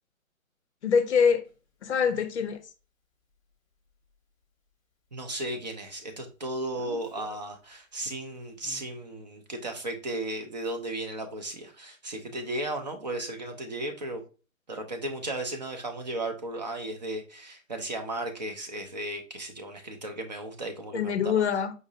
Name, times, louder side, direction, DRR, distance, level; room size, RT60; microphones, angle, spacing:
voice 1, 0.8-1.4 1.8-2.6 20.9-21.7, left 6 dB, 55° left, 0.5 m, -24 dB
Speech, 1.4-1.5 6.7-7.4 8.6-8.9, left 1 dB, 10° left, 0.6 m, -46 dB
voice 2, 5.1-14.2 14.7-21.4, right 1 dB, 35° right, 0.5 m, -35 dB
4.9 x 2.6 x 2.5 m
figure-of-eight pair, 140°, 41 cm